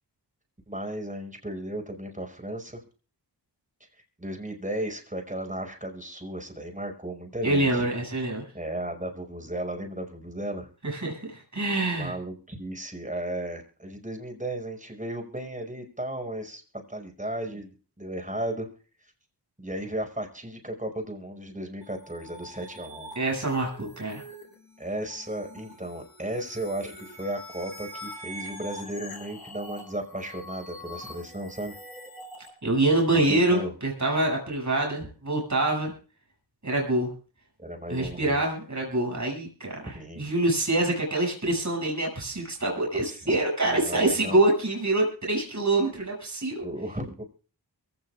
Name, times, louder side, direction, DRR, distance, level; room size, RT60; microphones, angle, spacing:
voice 1, 0.7-2.8 4.2-7.8 8.5-10.7 12.0-16.6 16.9-18.7 19.6-23.1 24.8-31.8 33.1-33.7 37.6-38.4 39.8-40.2 42.7-43.4 43.6-44.4 46.6-47.2, right 1 dB, 20° right, 4 dB, 5.4 m, -35 dB
voice 2, 7.4-8.4 10.8-12.1 23.2-24.2 32.6-35.9 36.6-37.1 37.9-46.6, right 2 dB, 45° right, 0 dB, 7.0 m, -25 dB
sound 1, 21.8-32.5, equal, 60° left, 6.9 m, -44 dB
23.0 x 16.5 x 2.5 m, 0.37 s
cardioid pair, 45°, 42 cm